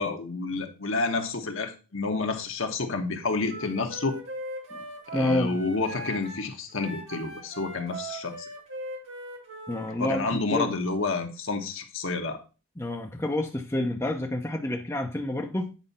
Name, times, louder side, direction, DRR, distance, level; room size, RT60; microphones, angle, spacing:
voice 1, 0.0-4.2 5.1-8.5 10.0-12.4, left 3 dB, 60° left, 1.2 m, -29 dB
Wind instrument woodwind instrument, 3.5-10.0, right 1 dB, 60° right, 2.3 m, -40 dB
voice 2, 5.1-5.5 9.7-10.7 12.8-15.7, left 1 dB, 15° left, 0.7 m, -28 dB
8.8 x 4.8 x 4.1 m
head